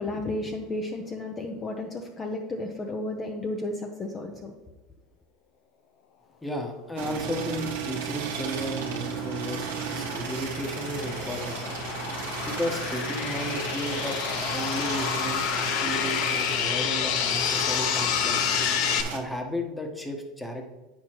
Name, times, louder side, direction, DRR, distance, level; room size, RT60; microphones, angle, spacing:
voice 1, 0.0-4.5, left 2 dB, 30° left, 2 dB, 0.7 m, -33 dB
voice 2, 6.4-11.6 12.4-18.4 19.1-20.7, equal, 10° left, 3 dB, 1.2 m, -34 dB
sound 1, 7.0-19.2, right 6 dB, 85° right, 1.2 m, -34 dB
sound 2, 8.2-19.0, left 9 dB, 60° left, 0.6 m, -29 dB
8.4 x 6.4 x 3.0 m, 1.1 s
supercardioid pair, 100°, 0 cm